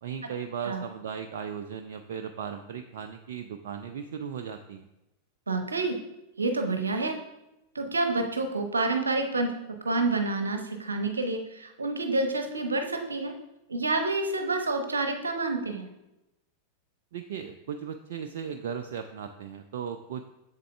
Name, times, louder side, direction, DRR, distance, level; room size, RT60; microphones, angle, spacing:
voice 1, 0.0-4.9 17.1-20.3, right 7 dB, 55° right, 7 dB, 0.4 m, -37 dB
voice 2, 5.5-6.0 6.4-7.2 7.7-9.5 9.8-13.3 13.7-15.9, right 3 dB, 75° right, 6 dB, 0.9 m, -28 dB
7.5 x 7.3 x 3.4 m, 0.94 s
figure-of-eight pair, 90°, 0 cm